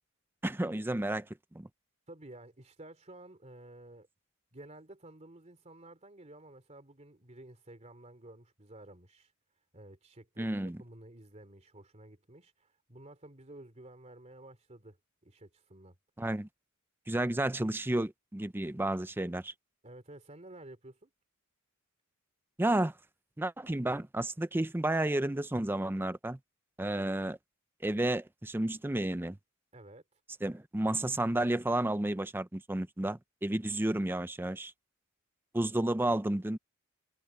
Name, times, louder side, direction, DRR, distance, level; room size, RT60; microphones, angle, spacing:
voice 1, 0.4-1.3 1.5-1.7 10.4-10.8 16.2-16.5 17.1-19.5 22.6-22.9 23.4-26.4 26.8-27.4 27.8-29.4 30.4-34.7 35.5-36.6, right 1 dB, 10° right, 0.5 m, -31 dB
voice 2, 2.1-4.1 4.5-9.3 9.7-15.0 15.2-15.9 19.8-21.1 29.7-30.0, right 1 dB, 30° right, 2.9 m, -52 dB
head